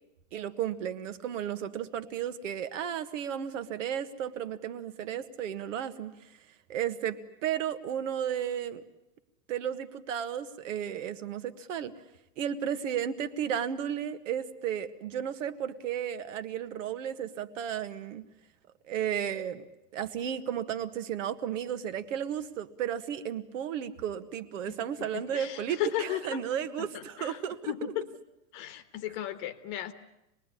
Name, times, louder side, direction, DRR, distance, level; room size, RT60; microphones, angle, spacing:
voice 1, 0.3-6.1 6.7-8.8 9.5-11.9 12.4-18.2 18.9-19.6 19.9-27.9, right 9 dB, 55° right, 11 dB, 1.6 m, -34 dB
voice 2, 25.1-25.5 25.8-26.2 27.2-27.3 27.6-27.9 28.5-29.9, left 13 dB, 30° left, 11 dB, 1.4 m, -34 dB
26.5 x 20.0 x 9.9 m, 0.90 s
supercardioid pair, 165°, 46 cm